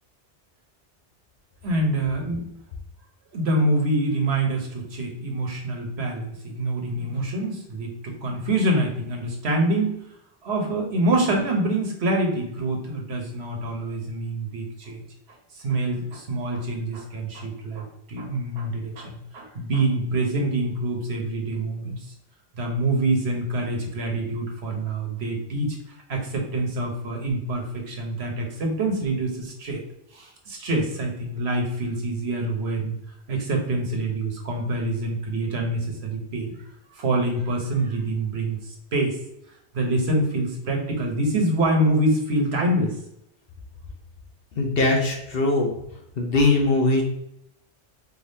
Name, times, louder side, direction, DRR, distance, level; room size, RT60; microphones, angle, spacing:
voice 1, 1.6-2.4 3.3-10.0 10.4-15.0 15.5-22.0 22.5-29.8 30.1-32.9 33.3-36.7 36.9-39.2 39.7-43.0, right 1 dB, 65° right, 1 dB, 1.2 m, -26 dB
voice 2, 44.5-45.8 46.2-47.0, left 2 dB, 60° left, 1 dB, 1.0 m, -21 dB
4.3 x 3.5 x 2.7 m, 0.80 s
omnidirectional pair, 1.2 m